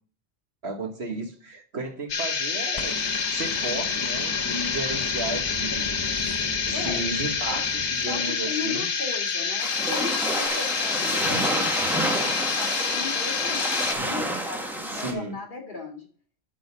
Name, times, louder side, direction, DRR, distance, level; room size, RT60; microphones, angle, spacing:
voice 1, 0.6-2.9 3.3-5.9 6.7-8.9 14.0-14.1 14.9-15.4, right 2 dB, 70° right, 1.7 m, -34 dB
sound 1, 2.1-13.9, left 5 dB, 85° left, 1.3 m, -27 dB
sound 2, 2.7-8.9 10.5-10.6, left 2 dB, 30° left, 0.5 m, -37 dB
voice 2, 6.7-7.0 7.5-7.6 8.1-11.7 12.2-16.1, left 4 dB, 50° left, 2.4 m, -37 dB
sound 3, 9.6-15.1, right 1 dB, ahead, 1.3 m, -29 dB
8.7 x 4.0 x 6.9 m
omnidirectional pair, 1.1 m